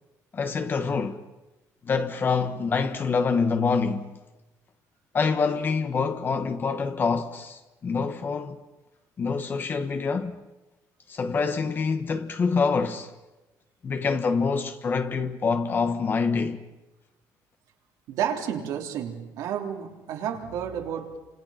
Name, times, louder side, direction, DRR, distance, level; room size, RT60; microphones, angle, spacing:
voice 1, 0.3-1.2 1.8-4.1 5.1-8.6 9.2-10.4 11.1-13.1 13.8-16.6, left 5 dB, 35° left, 1.3 m, -26 dB
voice 2, 18.1-21.2, right 9 dB, 80° right, 3.5 m, -31 dB
30.0 x 27.0 x 5.9 m
cardioid pair, 135°, 6 cm